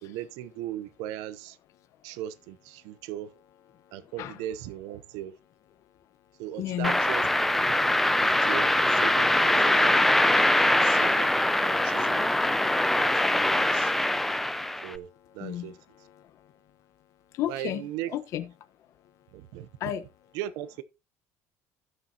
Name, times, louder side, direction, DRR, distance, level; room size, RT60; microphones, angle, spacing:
voice 1, 0.0-1.6 2.0-3.3 3.9-5.3 6.4-7.3 7.7-7.8 8.2-10.0 10.6-11.3 11.6-12.3 12.9-13.9 14.8-15.1 15.3-15.8 17.5-18.1 19.3-19.7 20.3-20.8, right 12 dB, 85° right, 0.8 m, -38 dB
voice 2, 6.6-7.0 15.4-15.7 17.3-17.8 18.1-18.5 19.8-20.0, left 11 dB, 55° left, 1.1 m, -31 dB
sound 1, 6.8-14.9, left 1 dB, 5° left, 0.4 m, -23 dB
15.5 x 6.5 x 2.9 m
cardioid pair, 155°, 6 cm